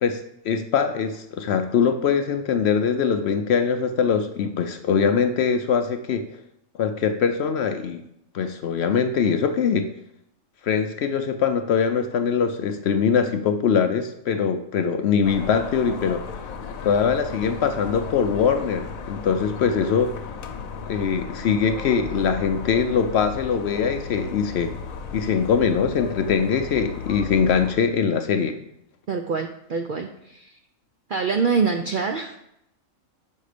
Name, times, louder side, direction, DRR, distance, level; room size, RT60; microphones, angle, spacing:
voice 1, 0.0-6.3 6.8-8.0 8.3-9.9 10.6-16.2 16.8-20.1 20.9-24.7 25.1-28.6, left 6 dB, 65° left, 7 dB, 0.7 m, -22 dB
sound 1, 15.2-27.7, left 5 dB, 85° left, 1.1 m, -35 dB
voice 2, 29.1-30.6 31.1-32.4, right 5 dB, 65° right, 4 dB, 0.5 m, -25 dB
6.4 x 5.3 x 5.0 m, 0.79 s
omnidirectional pair, 1.4 m